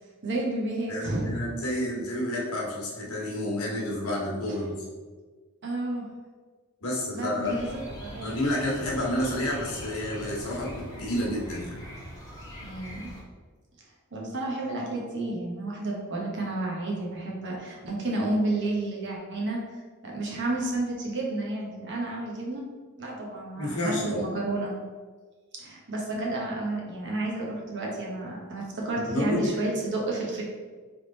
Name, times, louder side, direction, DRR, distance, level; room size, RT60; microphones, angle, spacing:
voice 1, 0.2-1.4 5.6-6.0 7.1-8.3 12.6-13.1 14.1-19.6 20.0-22.7 23.0-24.7 25.6-30.4, right 2 dB, 55° right, -2 dB, 1.1 m, -31 dB
voice 2, 0.9-4.8 6.8-7.6 8.2-11.8 23.6-24.3 29.1-29.6, left 1 dB, 70° left, -3 dB, 1.2 m, -30 dB
sound 1, 7.4-13.2, equal, 15° left, 1.1 m, -42 dB
3.7 x 3.4 x 4.0 m, 1.4 s
head